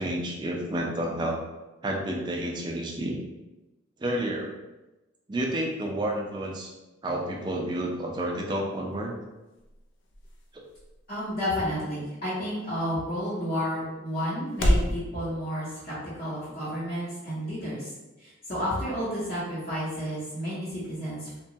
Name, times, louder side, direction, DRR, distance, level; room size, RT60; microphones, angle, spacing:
voice 1, 0.0-1.4 1.8-3.2 4.0-4.5 5.3-6.7 7.0-9.1 10.5-10.6, right 1 dB, 20° right, 0 dB, 0.3 m, -30 dB
sound 1, 8.7-15.0, equal, 65° left, 0.5 m, -33 dB
voice 2, 11.1-17.9 18.2-21.4, equal, 45° left, -11 dB, 0.8 m, -31 dB
2.8 x 2.2 x 2.6 m, 1.0 s
head